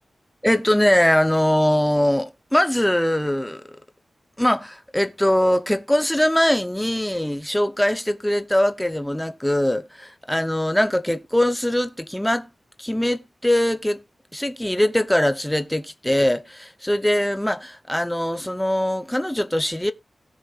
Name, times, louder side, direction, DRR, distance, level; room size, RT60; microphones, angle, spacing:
voice 1, 0.4-3.6 4.4-12.5 12.8-14.0 14.3-19.9, left 1 dB, 5° left, 0.7 m, -21 dB
17.0 x 6.2 x 2.4 m
wide cardioid pair, 105°, 0 cm